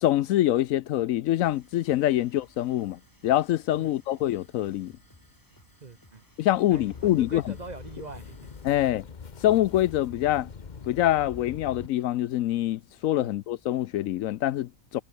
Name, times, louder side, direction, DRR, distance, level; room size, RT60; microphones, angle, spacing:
voice 1, 0.0-4.9 6.4-7.5 8.6-9.1 9.4-10.5 10.8-15.0, left 13 dB, 75° left, 0.9 m, -25 dB
sound 1, 1.4-9.0, left 1 dB, 15° left, 4.6 m, -59 dB
voice 2, 5.8-6.2 6.7-8.4 13.2-13.3, right 3 dB, 35° right, 1.0 m, -42 dB
sound 2, 6.7-11.9, left 5 dB, 35° left, 1.0 m, -43 dB
omnidirectional pair, 1.5 m